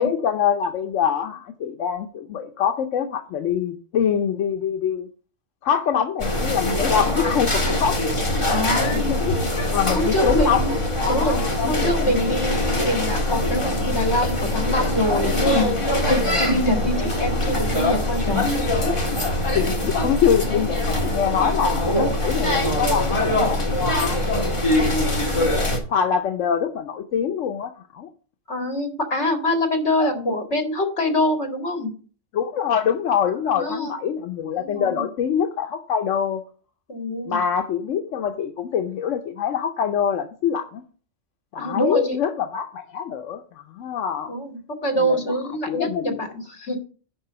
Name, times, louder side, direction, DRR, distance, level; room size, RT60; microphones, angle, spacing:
voice 1, 0.0-5.1 5.6-8.0 8.9-9.4 9.7-10.6 11.0-11.9 19.5-24.2 25.9-28.1 30.0-30.3 32.3-36.4 37.2-40.8 41.5-44.3 45.0-45.2 45.7-46.2, left 8 dB, 90° left, 5 dB, 1.1 m, -24 dB
sound 1, 6.2-25.8, left 1 dB, 25° left, 1.6 m, -23 dB
voice 2, 8.5-9.1 9.9-10.7 11.1-15.8 16.1-18.5 18.8-19.0 28.5-31.9 33.5-33.9 34.6-35.1 36.9-37.4 41.6-42.2 44.3-46.8, left 1 dB, 65° left, 4 dB, 2.3 m, -25 dB
10.5 x 3.8 x 6.7 m, 0.41 s
omnidirectional pair, 1.2 m